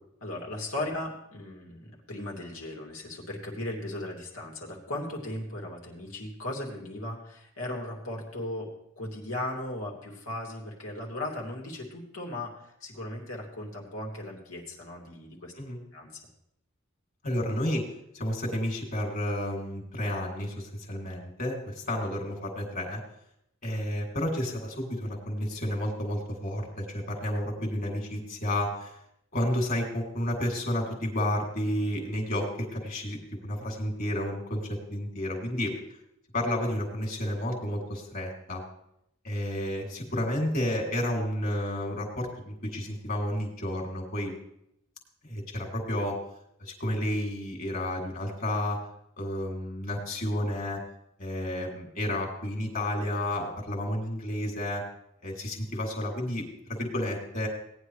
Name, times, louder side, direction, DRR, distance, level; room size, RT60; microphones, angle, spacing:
voice 1, 0.2-8.7 9.0-12.5 12.8-15.5 15.9-16.2, left 1 dB, 90° left, 0 dB, 2.8 m, -37 dB
voice 2, 17.2-17.8 18.1-23.0 23.6-28.9 29.3-35.7 36.3-38.6 39.2-44.3 45.2-46.2 46.6-48.8 49.2-50.8 51.2-54.8 55.2-56.4 56.7-57.5, left 1 dB, 50° left, 0 dB, 2.9 m, -31 dB
18.0 x 9.7 x 3.3 m, 0.77 s
head